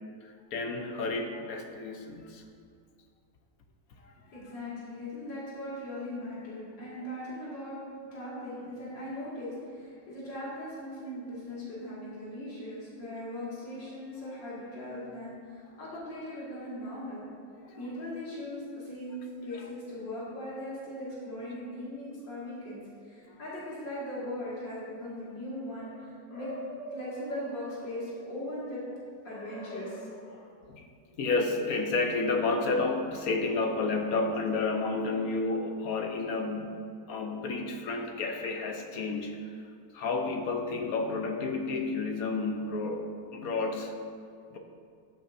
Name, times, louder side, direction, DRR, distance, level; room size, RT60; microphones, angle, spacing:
voice 1, 0.2-2.4 4.0-4.1 17.6-17.8 30.7-30.9 31.2-36.7 37.1-39.5 39.9-44.0 44.5-44.6, left 3 dB, 65° left, 3 dB, 1.0 m, -31 dB
voice 2, 4.3-7.8 8.1-17.2 17.7-28.8 29.2-30.4, left 1 dB, 85° left, -8 dB, 2.8 m, -39 dB
13.0 x 7.9 x 2.6 m, 2.2 s
omnidirectional pair, 1.9 m